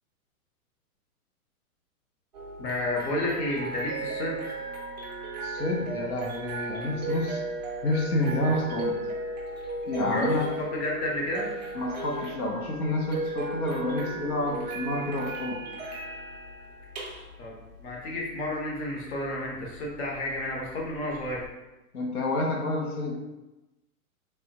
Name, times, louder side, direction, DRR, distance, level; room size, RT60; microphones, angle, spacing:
sound 1, 2.3-21.5, right 2 dB, 35° right, 0.4 m, -36 dB
voice 1, 2.6-4.4 10.0-11.5 17.4-17.5 17.8-21.4, left 1 dB, 50° left, -2 dB, 0.9 m, -31 dB
voice 2, 5.4-7.4 7.8-9.0 9.9-10.5 11.7-15.6 21.9-23.1, left 1 dB, 90° left, 0 dB, 0.9 m, -29 dB
3.4 x 2.2 x 2.8 m, 1.0 s
hypercardioid pair, 160°, 43 cm